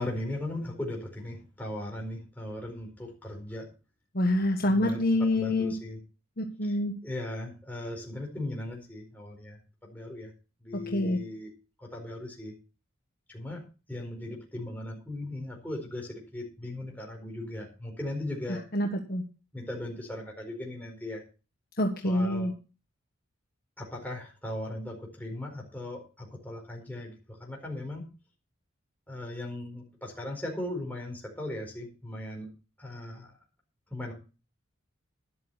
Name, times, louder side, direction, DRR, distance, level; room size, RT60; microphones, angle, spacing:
voice 1, 0.0-3.7 4.7-6.0 6.6-6.8 7.0-10.3 10.6-11.5 11.8-12.5 13.3-13.6 13.9-18.6 19.5-21.2 22.0-22.5 23.8-28.1 29.1-32.5 32.8-33.3 33.9-34.1, left 1 dB, 10° left, -1 dB, 4.6 m, -38 dB
voice 2, 4.1-5.7 6.4-6.9 10.7-11.2 18.7-19.2 21.8-22.5, left 1 dB, 45° left, 2 dB, 1.5 m, -26 dB
12.5 x 11.0 x 4.2 m, 0.33 s
head